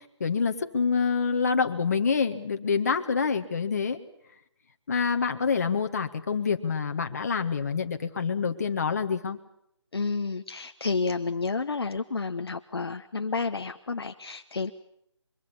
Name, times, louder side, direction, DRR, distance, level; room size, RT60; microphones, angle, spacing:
voice 1, 0.2-4.0 4.9-9.4, left 5 dB, 35° left, 6 dB, 1.7 m, -26 dB
voice 2, 9.9-14.7, left 4 dB, 55° left, 7 dB, 1.1 m, -30 dB
24.0 x 24.0 x 7.1 m, 0.74 s
figure-of-eight pair, 170°, 15 cm